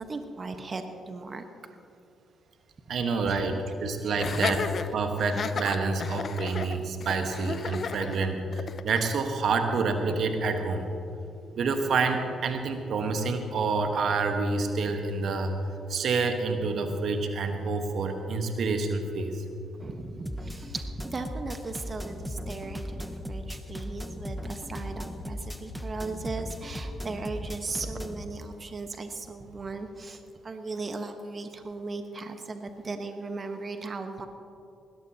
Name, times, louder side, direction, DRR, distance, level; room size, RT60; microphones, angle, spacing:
voice 1, 0.0-1.4 3.3-3.5 4.0-4.2 4.5-4.6 19.8-34.3, right 3 dB, 40° right, 6 dB, 1.2 m, -37 dB
voice 2, 2.9-4.7 4.9-10.9 11.5-15.5 15.9-19.4, right 4 dB, 60° right, 5 dB, 1.3 m, -28 dB
Laughter, 4.2-9.1, left 6 dB, 55° left, 0.7 m, -34 dB
sound 1, 20.3-28.3, left 1 dB, 5° left, 1.3 m, -37 dB
20.0 x 17.0 x 2.9 m, 2.8 s
hypercardioid pair, 45°, 0 cm